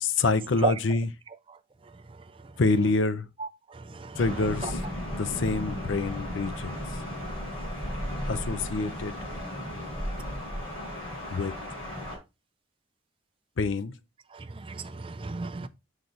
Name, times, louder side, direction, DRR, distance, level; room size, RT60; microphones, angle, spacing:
voice 1, 0.0-1.1 2.6-3.3 4.2-4.8 5.2-6.7 8.3-9.1 11.3-11.5 13.6-13.9, left 3 dB, 75° left, 0.6 m, -26 dB
voice 2, 3.7-4.7 14.3-15.7, right 3 dB, 25° right, 0.4 m, -33 dB
Thunder, 4.2-12.2, equal, 30° left, 4.4 m, -35 dB
6.6 x 4.0 x 4.4 m
head